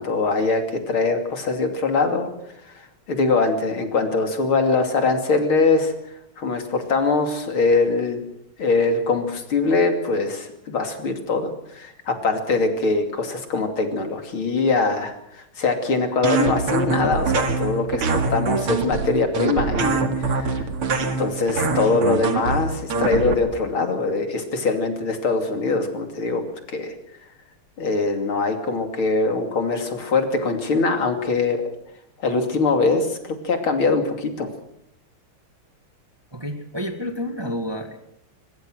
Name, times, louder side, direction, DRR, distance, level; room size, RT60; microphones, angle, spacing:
voice 1, 0.0-2.3 3.1-5.9 6.4-8.2 8.6-20.6 21.0-26.4 26.7-27.0 27.8-31.6 32.2-34.5, left 3 dB, 70° left, 6 dB, 3.6 m, -22 dB
sound 1, 16.2-23.3, right 4 dB, 85° right, 3.1 m, -24 dB
voice 2, 36.3-38.0, equal, 10° right, 6 dB, 1.9 m, -29 dB
23.5 x 22.0 x 6.4 m, 0.76 s
omnidirectional pair, 2.4 m